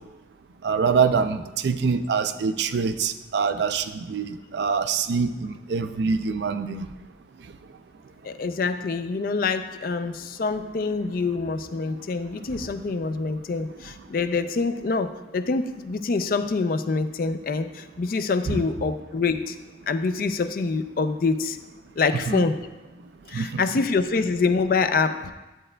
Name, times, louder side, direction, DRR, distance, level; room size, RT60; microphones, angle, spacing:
voice 1, 0.6-6.9 18.5-18.6 22.3-22.4 23.3-23.6, right 5 dB, 75° right, 10 dB, 0.4 m, -25 dB
voice 2, 8.2-19.6 19.9-21.6 22.0-22.6 23.3-25.3, left 4 dB, 50° left, 10 dB, 0.4 m, -25 dB
11.0 x 7.4 x 2.2 m, 1.1 s
head